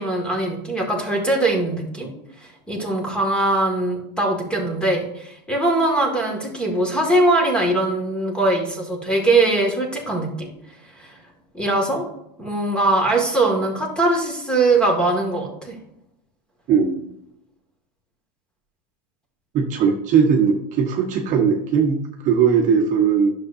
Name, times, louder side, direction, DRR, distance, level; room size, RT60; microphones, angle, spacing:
voice 1, 0.0-2.1 2.4-10.5 11.0-11.1 11.5-12.0 12.4-15.7, right 2 dB, 5° left, 1 dB, 1.9 m, -21 dB
voice 2, 16.7-17.0 19.5-22.0 22.2-23.3, right 6 dB, 35° right, 1 dB, 1.2 m, -18 dB
11.0 x 6.6 x 2.6 m, 0.78 s
supercardioid pair, 135°, 21 cm